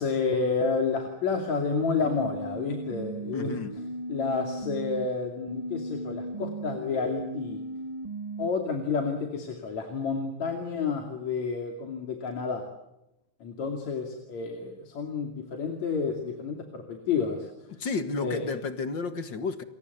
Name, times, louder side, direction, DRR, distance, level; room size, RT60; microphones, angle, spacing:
voice 1, 0.0-3.5 4.1-7.6 8.4-12.7 13.4-17.7 18.2-18.4, left 5 dB, 70° left, 3.9 m, -30 dB
sound 1, 2.0-5.1 5.5-8.5, right 2 dB, 20° right, 0.9 m, -36 dB
voice 2, 3.3-3.7 17.8-19.6, left 4 dB, 45° left, 2.0 m, -31 dB
29.5 x 23.0 x 8.1 m
omnidirectional pair, 3.3 m